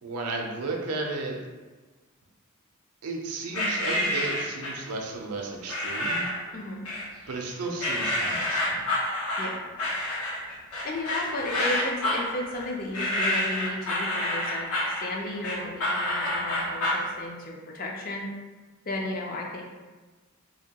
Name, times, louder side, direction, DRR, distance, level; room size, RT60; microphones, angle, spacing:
voice 1, 0.0-1.4 3.0-6.2 7.3-8.9, right 3 dB, 85° right, 1 dB, 0.5 m, -33 dB
sound 1, 3.5-4.9 5.7-6.4 6.9-7.4 7.8-17.1, left 1 dB, 75° left, 0.7 m, -28 dB
voice 2, 6.5-6.8 9.4-9.6 10.8-18.3 18.9-19.6, left 1 dB, 40° left, 0 dB, 0.4 m, -34 dB
2.7 x 2.2 x 2.8 m, 1.3 s
head